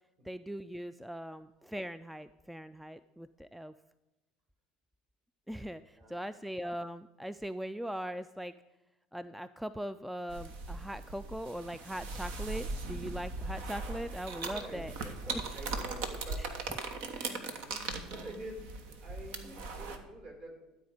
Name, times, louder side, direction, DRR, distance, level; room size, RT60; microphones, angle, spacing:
voice 1, 0.2-3.7 5.5-8.5 9.1-14.9 15.3-15.4 16.4-16.5 17.1-17.3 17.9-18.0 19.5-19.6, equal, ahead, 14 dB, 0.3 m, -40 dB
sound 1, 10.3-20.0, right 3 dB, 65° right, 1.2 m, -39 dB
voice 2, 14.5-15.2 15.5-16.7 17.2-20.8, right 1 dB, 50° right, 1 dB, 4.1 m, -48 dB
12.5 x 4.3 x 8.0 m, 1.0 s
hypercardioid pair, 70°, 3 cm